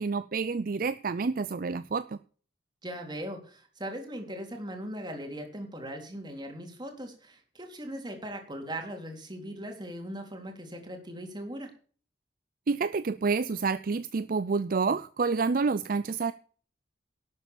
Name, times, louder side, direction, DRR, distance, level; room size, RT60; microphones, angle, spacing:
voice 1, 0.0-2.2 12.7-16.3, right 4 dB, 55° right, 14 dB, 0.5 m, -28 dB
voice 2, 2.8-11.7, equal, 25° right, 3 dB, 3.5 m, -39 dB
12.0 x 8.4 x 7.1 m, 0.43 s
head